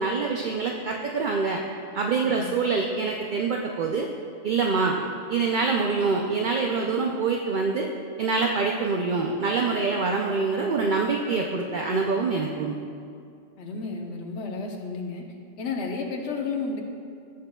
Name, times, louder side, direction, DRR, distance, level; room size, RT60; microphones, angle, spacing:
voice 1, 0.0-1.6 1.9-4.1 4.4-5.0 5.3-7.9 8.2-12.8, right 4 dB, 55° right, 1 dB, 0.5 m, -25 dB
voice 2, 13.6-15.2 15.6-16.8, left 4 dB, 60° left, 1 dB, 1.1 m, -32 dB
16.0 x 6.5 x 2.3 m, 2.3 s
omnidirectional pair, 1.3 m